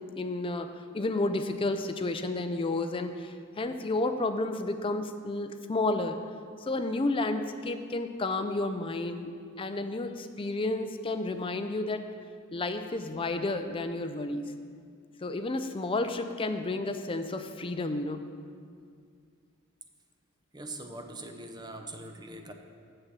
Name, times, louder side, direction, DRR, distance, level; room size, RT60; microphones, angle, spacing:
voice 1, 0.0-6.2 6.6-9.3 9.6-12.0 12.5-14.5 15.2-18.2, left 2 dB, 25° left, 8 dB, 0.4 m, -31 dB
voice 2, 20.5-22.5, right 2 dB, 20° right, 5 dB, 0.6 m, -42 dB
6.8 x 6.8 x 7.3 m, 2.2 s
head